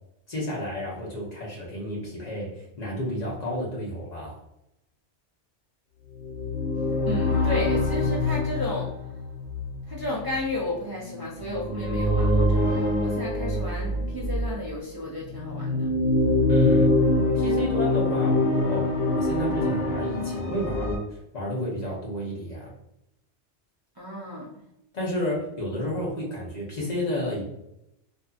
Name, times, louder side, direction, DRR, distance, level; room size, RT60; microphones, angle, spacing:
voice 1, 0.3-2.5 2.8-4.4 16.5-16.9 17.3-22.7 24.9-27.4, left 1 dB, 40° left, -4 dB, 0.9 m, -31 dB
sound 1, 6.2-14.6 15.3-21.0, left 1 dB, 85° left, 0.9 m, -25 dB
voice 2, 7.0-8.9 9.9-15.9 24.0-24.5, left 1 dB, 30° right, -6 dB, 0.4 m, -33 dB
2.6 x 2.5 x 2.4 m, 0.84 s
omnidirectional pair, 1.2 m